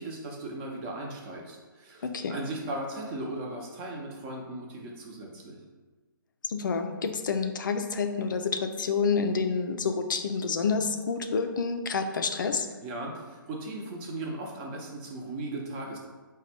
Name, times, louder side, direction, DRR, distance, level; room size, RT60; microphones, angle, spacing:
voice 1, 0.0-5.6 12.8-16.0, right 2 dB, 30° right, -1 dB, 0.7 m, -37 dB
voice 2, 2.0-2.4 6.4-12.7, left 5 dB, 65° left, 6 dB, 0.4 m, -28 dB
4.0 x 2.2 x 4.2 m, 1.3 s
figure-of-eight pair, 140°, 12 cm